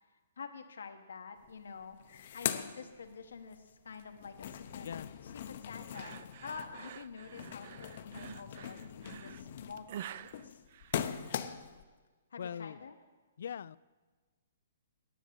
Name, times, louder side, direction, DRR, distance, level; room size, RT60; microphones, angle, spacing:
voice 1, 0.4-4.9 5.2-10.6 12.3-13.0, left 5 dB, 85° left, 6 dB, 1.1 m, -48 dB
sound 1, 1.4-1.5 1.8-3.6 3.9-11.8, left 9 dB, 50° left, 0.7 m, -41 dB
sound 2, 5.9-11.5, right 11 dB, 45° right, 0.3 m, -48 dB
voice 2, 12.4-12.8 13.4-13.8, left 8 dB, 65° left, 20 dB, 0.3 m, -40 dB
10.0 x 8.0 x 8.1 m, 1.4 s
hypercardioid pair, 155°, 0 cm